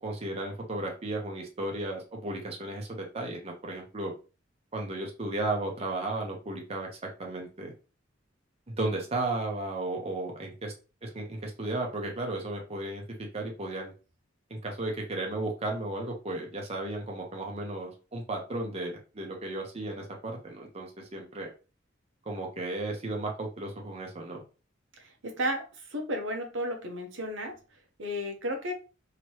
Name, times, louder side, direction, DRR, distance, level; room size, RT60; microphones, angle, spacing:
voice 1, 0.0-4.1 4.7-7.7 8.7-10.7 11.0-13.0 13.3-13.9 14.5-21.5 22.3-24.4, right 2 dB, 30° right, 0 dB, 0.7 m, -34 dB
voice 2, 25.0-28.7, equal, 80° right, 3 dB, 0.8 m, -34 dB
3.0 x 2.9 x 3.0 m, 0.33 s
head